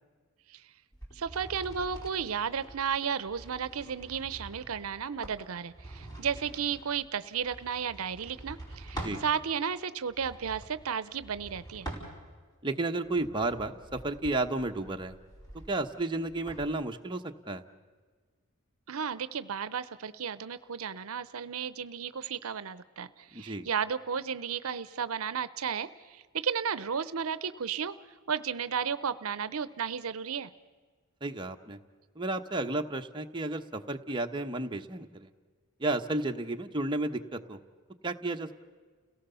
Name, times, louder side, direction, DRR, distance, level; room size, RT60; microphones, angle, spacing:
sound 1, 0.9-9.3 10.1-12.5 13.0-16.7, right 1 dB, 20° left, 5.0 m, -46 dB
voice 1, 1.1-11.9 18.9-27.9 28.3-30.5, right 7 dB, 80° right, 15 dB, 0.7 m, -33 dB
voice 2, 12.6-15.2 15.7-17.6 23.3-23.7 31.2-31.8 32.1-35.3 35.8-37.6 38.0-38.5, right 2 dB, 20° right, 4 dB, 1.0 m, -32 dB
30.0 x 17.5 x 6.9 m, 1.5 s
head